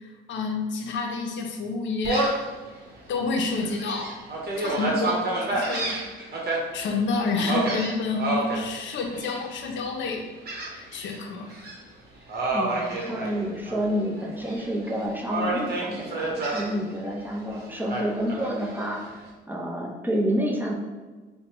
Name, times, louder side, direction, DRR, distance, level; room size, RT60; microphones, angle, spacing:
voice 1, 0.0-2.4 3.1-4.2 4.6-6.0 6.7-10.3 10.7-11.5 13.1-13.2, left 3 dB, 70° left, 3 dB, 0.6 m, -29 dB
Gull seagull, 2.0-2.5 3.0-3.1 3.6-6.6 7.5-8.6 9.1-9.6 10.5-11.2 11.5-11.7 12.3-13.8 14.2-14.9 15.3-16.7 17.9-18.9, right 2 dB, 55° right, 0.9 m, -28 dB
voice 2, 12.5-19.2 19.5-20.7, equal, 10° right, -1 dB, 0.6 m, -29 dB
4.5 x 2.2 x 2.9 m, 1.3 s
cardioid pair, 90°, 20 cm